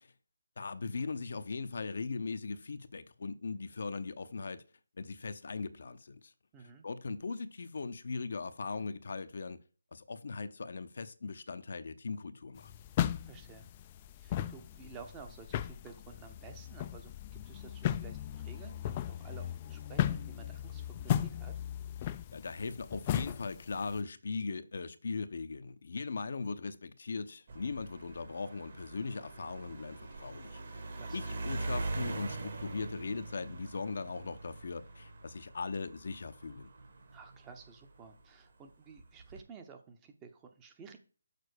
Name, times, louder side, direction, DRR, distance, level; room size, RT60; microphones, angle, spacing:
voice 1, 0.6-4.6 5.0-6.3 6.8-9.6 9.9-12.7 22.0-30.6 31.1-36.7, left 4 dB, 55° left, 0.7 m, -39 dB
voice 2, 6.5-6.9 13.2-13.7 14.1-21.5 30.9-31.3 37.1-41.0, right 5 dB, 15° right, 0.8 m, -53 dB
sound 1, 12.6-24.0, left 11 dB, 25° left, 0.4 m, -36 dB
Car Fiat Punto pass by, 27.5-38.2 39.0-39.4, right 3 dB, 50° right, 2.1 m, -43 dB
6.7 x 4.2 x 6.5 m
figure-of-eight pair, 150°, 0 cm